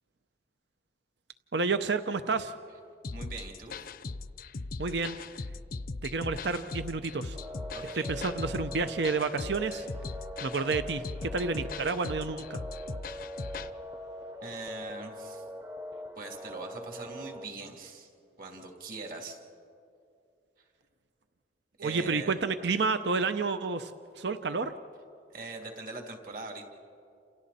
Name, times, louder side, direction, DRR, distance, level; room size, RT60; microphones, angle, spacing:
voice 1, 1.5-2.5 4.8-5.2 6.0-7.4 7.9-9.9 10.4-12.6 21.8-24.7, right 4 dB, 70° right, 10 dB, 0.7 m, -30 dB
sound 1, 3.0-13.7, left 3 dB, 50° left, 0.6 m, -39 dB
voice 2, 3.1-3.7 7.7-8.1 14.4-15.4 16.2-18.1 18.4-19.4 21.8-22.4 25.3-26.6, right 3 dB, 50° right, 2 dB, 2.8 m, -42 dB
sound 2, 7.3-17.4, equal, 15° right, 0.8 m, -42 dB
29.5 x 28.0 x 4.3 m, 2.5 s
head